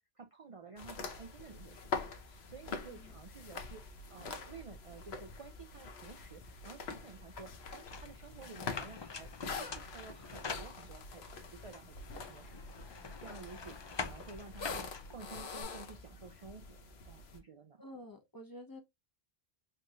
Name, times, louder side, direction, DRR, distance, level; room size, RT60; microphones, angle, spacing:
voice 1, 0.0-1.9 2.2-17.8, right 4 dB, 45° right, 0.5 m, -52 dB
sound 1, 0.8-17.4, left 4 dB, 80° left, 1.1 m, -45 dB
voice 2, 2.8-3.2 17.8-18.8, left 1 dB, 20° left, 1.1 m, -50 dB
sound 2, 7.9-11.2 11.7-15.6, left 5 dB, 40° left, 0.4 m, -45 dB
4.4 x 3.1 x 2.5 m
omnidirectional pair, 1.0 m